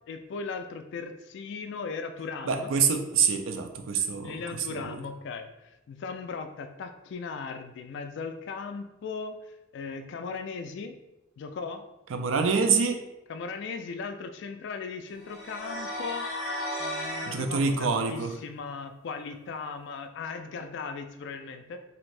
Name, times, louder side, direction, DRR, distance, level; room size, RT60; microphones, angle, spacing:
voice 1, 0.1-2.7 3.9-5.5 5.9-9.4 9.7-10.9 11.4-11.8 13.3-16.3 16.8-21.8, left 4 dB, 60° left, 7 dB, 0.3 m, -37 dB
voice 2, 2.4-4.4 4.7-5.0 12.1-13.0 17.3-18.3, right 5 dB, 80° right, 6 dB, 0.4 m, -26 dB
sound 1, 15.2-17.4, left 1 dB, ahead, 1.0 m, -34 dB
2.7 x 2.5 x 3.2 m, 0.93 s
head